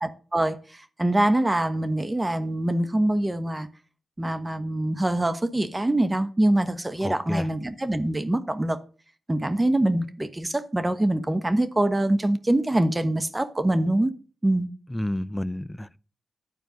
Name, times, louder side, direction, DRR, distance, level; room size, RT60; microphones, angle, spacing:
voice 1, 0.0-0.6 1.0-3.7 4.2-8.8 9.3-14.1 14.4-14.7, right 1 dB, 20° right, 1.2 m, -24 dB
voice 2, 7.0-7.5 14.9-16.0, left 1 dB, 10° left, 0.5 m, -30 dB
10.5 x 4.5 x 6.4 m
supercardioid pair, 50°, 0 cm